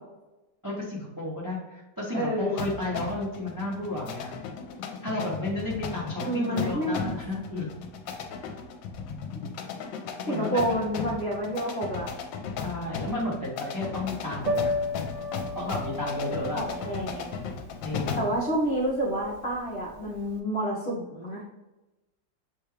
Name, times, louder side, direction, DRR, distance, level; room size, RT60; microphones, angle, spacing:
voice 1, 0.6-4.4 4.8-7.7 10.2-10.6 12.6-14.8 15.5-16.6 17.8-18.3, left 2 dB, 30° right, -5 dB, 0.4 m, -32 dB
voice 2, 2.1-2.7 6.2-7.1 9.3-9.5 10.3-12.1 16.5-17.3 18.2-21.4, right 1 dB, 50° left, -5 dB, 0.8 m, -29 dB
sound 1, 2.6-18.4, left 5 dB, 80° left, 1.3 m, -36 dB
Piano, 14.4-20.3, left 2 dB, 80° right, 1.3 m, -34 dB
6.8 x 2.3 x 3.2 m, 1.0 s
omnidirectional pair, 2.0 m